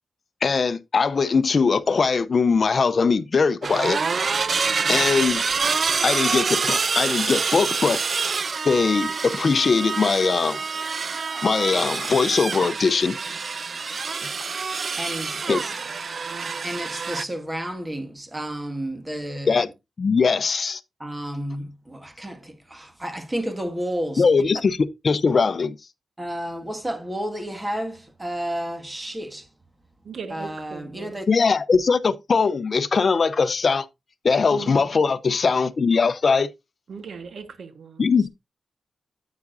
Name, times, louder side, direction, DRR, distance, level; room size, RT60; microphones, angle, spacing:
voice 1, 0.4-4.0 4.9-5.4 6.0-8.0 8.6-10.6 11.4-13.2 14.2-14.3 15.5-15.6 19.5-19.7 20.0-20.8 24.2-25.7 31.3-33.9 34.2-36.5 38.0-38.3, left 5 dB, 50° left, 0.6 m, -21 dB
sound 1, 3.6-17.2, right 5 dB, 50° right, 0.4 m, -26 dB
voice 2, 15.0-15.7 16.6-19.7 21.0-24.3 26.2-29.5 30.3-31.3, equal, 15° right, 1.7 m, -31 dB
voice 3, 30.0-31.1 34.5-35.0 36.9-38.0, right 5 dB, 70° right, 1.2 m, -38 dB
9.5 x 8.4 x 2.6 m
wide cardioid pair, 105°, 0 cm